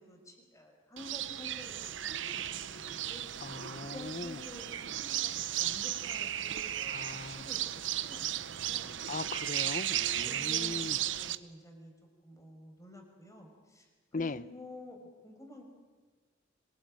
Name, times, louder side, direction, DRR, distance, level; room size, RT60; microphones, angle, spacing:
voice 1, 0.0-3.2 3.8-8.9 10.2-11.9 12.2-13.9 14.2-15.6, left 1 dB, 15° left, 3 dB, 5.7 m, -50 dB
sound 1, 1.0-11.4, right 12 dB, 70° right, 0.9 m, -35 dB
voice 2, 3.4-4.4 6.9-7.5 9.1-11.0 14.1-14.4, left 3 dB, 45° left, 17 dB, 0.8 m, -39 dB
25.5 x 21.0 x 8.9 m, 1.3 s
head